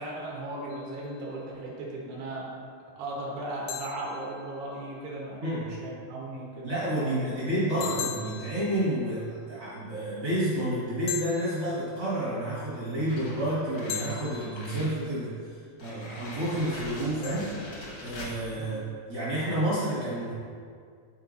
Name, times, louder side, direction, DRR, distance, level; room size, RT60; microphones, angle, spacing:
voice 1, 0.0-2.5 3.0-6.7 7.0-7.2 7.6-7.9 18.5-18.8, right 2 dB, 75° right, -3 dB, 3.0 m, -37 dB
sound 1, 0.7-1.5 3.7-5.1 7.8-9.6 11.1-12.5 13.9-15.3 17.2-18.5, left 9 dB, 80° left, 2.3 m, -41 dB
voice 2, 5.4-5.7 6.6-17.6 18.0-20.3, right 1 dB, 50° right, -9 dB, 1.3 m, -30 dB
sound 2, 13.1-15.0 15.3-15.4 15.8-18.4, left 1 dB, 60° left, 1.3 m, -42 dB
13.0 x 4.5 x 2.6 m, 2.2 s
omnidirectional pair, 4.9 m